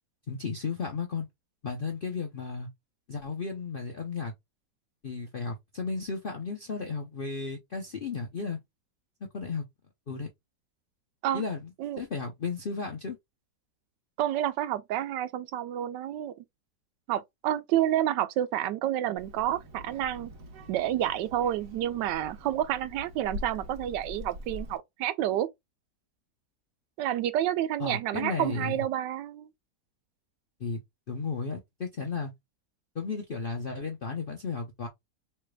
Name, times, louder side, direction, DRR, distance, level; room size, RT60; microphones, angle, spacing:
voice 1, 0.3-1.3 1.6-2.7 3.1-4.3 5.0-8.6 9.3-9.7 10.1-10.3 11.3-11.7 12.0-13.2 27.8-28.8 30.6-30.8 31.1-32.3 32.9-34.9, left 4 dB, 60° left, 0.5 m, -34 dB
voice 2, 14.2-16.3 17.1-20.3 20.7-25.5 27.0-29.5, right 12 dB, 85° right, 1.2 m, -29 dB
Child speech kid speaking, 19.2-24.8, left 1 dB, 55° right, 1.3 m, -44 dB
4.9 x 3.3 x 2.2 m
omnidirectional pair, 1.9 m